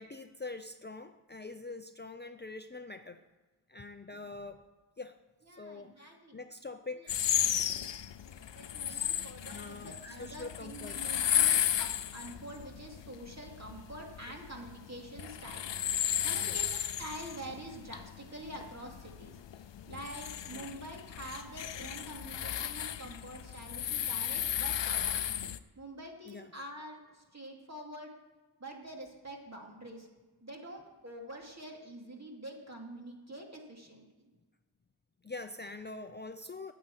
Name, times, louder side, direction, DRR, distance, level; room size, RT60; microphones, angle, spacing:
voice 1, 0.0-3.2 3.7-4.6 5.0-5.2 5.6-7.2 8.9-9.1 9.5-11.0 16.4-16.6 20.5-20.7 26.3-26.5 35.2-36.7, left 3 dB, 25° left, 8 dB, 0.5 m, -44 dB
voice 2, 5.4-6.4 6.9-7.1 7.6-15.7 16.2-19.4 19.9-25.2 25.8-28.1 28.6-30.1 30.4-34.3, right 1 dB, 40° right, 0 dB, 2.5 m, -46 dB
sound 1, 7.1-25.6, left 10 dB, 85° left, 0.6 m, -34 dB
9.4 x 7.7 x 8.8 m, 1.3 s
wide cardioid pair, 65°, 42 cm